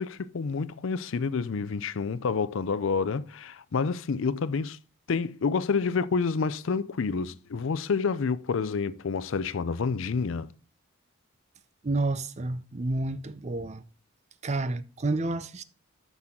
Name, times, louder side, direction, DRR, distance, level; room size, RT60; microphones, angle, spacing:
voice 1, 0.0-4.8 5.1-10.5, left 5 dB, 65° left, 0.5 m, -28 dB
voice 2, 11.8-13.8 14.4-15.6, right 2 dB, 35° right, 0.5 m, -30 dB
9.8 x 6.1 x 3.7 m
head